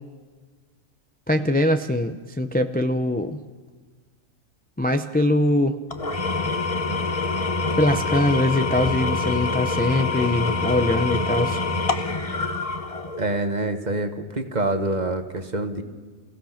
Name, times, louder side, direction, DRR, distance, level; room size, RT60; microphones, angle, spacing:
voice 1, 1.3-3.4 4.8-5.8 7.8-11.6, left 1 dB, 10° left, 7 dB, 0.4 m, -22 dB
Engine / Tools, 5.9-13.4, left 3 dB, 30° left, 1.1 m, -25 dB
voice 2, 13.2-15.8, right 2 dB, 35° right, 7 dB, 1.4 m, -26 dB
29.5 x 16.5 x 5.8 m, 1.5 s
omnidirectional pair, 1.4 m